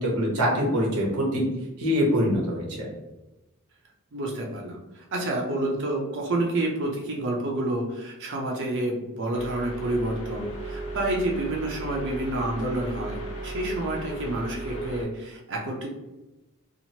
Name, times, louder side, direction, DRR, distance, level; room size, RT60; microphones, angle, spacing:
voice 1, 0.0-1.4 1.8-2.9, equal, 90° right, -3 dB, 0.8 m, -24 dB
voice 2, 4.1-15.9, right 1 dB, 55° right, -1 dB, 0.5 m, -29 dB
sound 1, 9.3-15.0, right 2 dB, 65° left, 0.9 m, -35 dB
2.9 x 2.4 x 2.8 m, 1.0 s
head